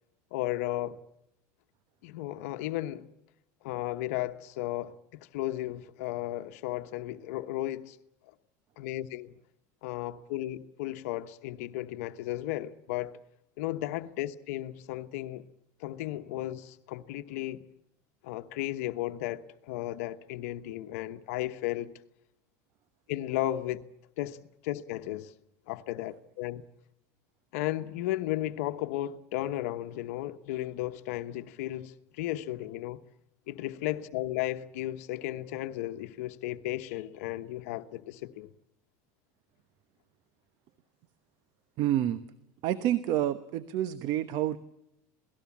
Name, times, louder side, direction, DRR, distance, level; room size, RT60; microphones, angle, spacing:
voice 1, 0.3-1.0 2.0-3.1 3.6-8.0 8.8-9.3 9.8-13.2 13.6-15.5 15.8-17.6 18.2-21.9 23.1-23.8 24.2-25.3 25.7-26.6 27.5-33.0 33.5-38.5, left 15 dB, 85° left, 1.1 m, -34 dB
voice 2, 41.8-42.2 42.6-44.6, right 12 dB, 60° right, 1.1 m, -28 dB
28.0 x 18.5 x 7.3 m
supercardioid pair, 125°, 8 cm